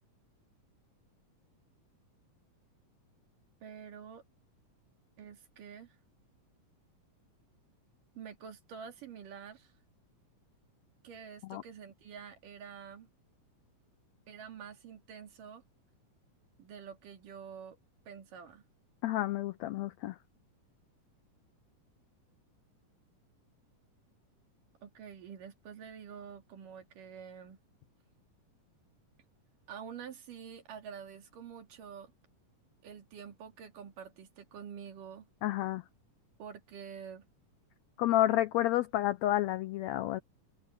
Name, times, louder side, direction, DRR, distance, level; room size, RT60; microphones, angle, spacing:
voice 1, 3.6-4.2 5.2-6.0 8.2-9.7 11.0-13.1 14.3-15.6 16.6-17.8 18.1-18.6 24.8-27.6 29.7-32.1 32.8-35.3 36.4-37.3, right 7 dB, 80° right, 4.1 m, -47 dB
voice 2, 19.0-20.1 35.4-35.8 38.0-40.2, left 14 dB, 85° left, 1.5 m, -30 dB
omnidirectional pair, 3.8 m